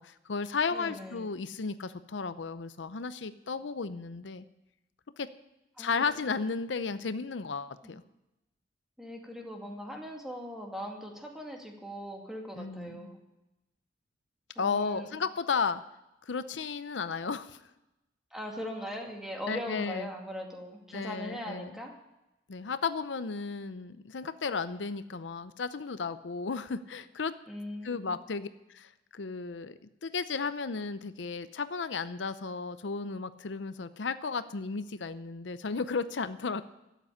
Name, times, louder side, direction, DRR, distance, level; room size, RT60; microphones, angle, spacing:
voice 1, 0.0-4.5 5.2-5.3 5.8-8.0 12.5-13.1 14.6-15.8 16.3-17.6 19.5-20.1 20.9-21.7 22.5-27.3 27.8-36.6, left 5 dB, 85° left, 12 dB, 0.7 m, -34 dB
voice 2, 0.7-1.3 5.8-6.4 7.8-7.9 9.0-13.2 14.6-15.1 18.3-21.9 27.5-28.2, equal, ahead, 1 dB, 2.2 m, -40 dB
12.5 x 8.2 x 9.8 m, 0.93 s
head